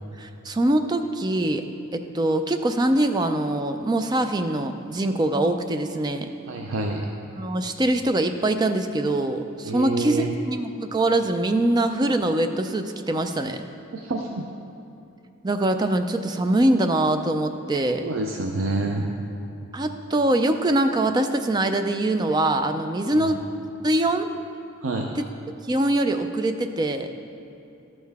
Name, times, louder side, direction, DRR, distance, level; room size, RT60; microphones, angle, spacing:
voice 1, 0.2-1.6 1.9-6.3 7.4-13.6 15.4-18.1 19.7-23.4 23.8-24.3 25.2-25.3 25.7-27.1, right 1 dB, 20° right, 7 dB, 0.4 m, -23 dB
voice 2, 6.5-7.1 9.6-10.3 13.9-14.4 18.0-19.1 23.1-23.3 24.8-25.2, right 3 dB, 75° right, 2 dB, 0.5 m, -27 dB
12.5 x 6.5 x 3.5 m, 2.8 s
head